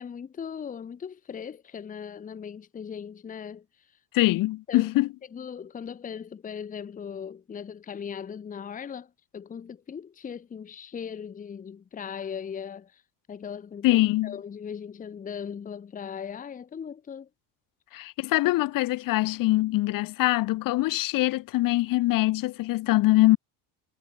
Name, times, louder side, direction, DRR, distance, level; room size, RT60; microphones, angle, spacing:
voice 1, 0.0-3.7 4.7-4.9 5.3-13.0 13.3-17.3, left 7 dB, 20° left, 1.0 m, -38 dB
voice 2, 4.1-5.1 13.8-14.3 17.9-23.4, left 18 dB, 55° left, 0.8 m, -23 dB
cardioid pair, 160°, 41 cm